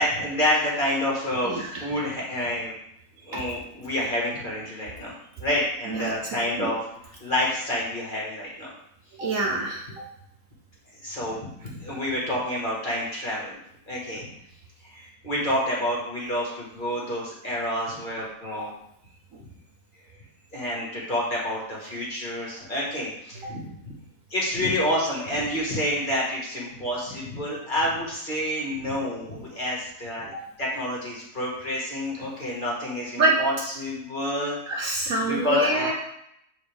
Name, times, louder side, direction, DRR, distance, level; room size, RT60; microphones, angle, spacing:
voice 1, 0.0-2.7 3.3-6.8 7.2-8.7 11.0-13.6 13.9-14.3 14.8-18.7 20.5-23.9 24.3-30.3 30.6-34.6 35.2-35.9, left 1 dB, 30° left, -5 dB, 1.8 m, -28 dB
voice 2, 1.4-1.8 3.3-3.4 5.9-6.1 6.6-6.7 9.2-10.0 11.9-12.0 30.3-30.4 33.2-33.4 34.7-35.9, right 2 dB, 60° right, -1 dB, 1.1 m, -26 dB
7.8 x 4.0 x 3.4 m, 0.76 s
omnidirectional pair, 1.8 m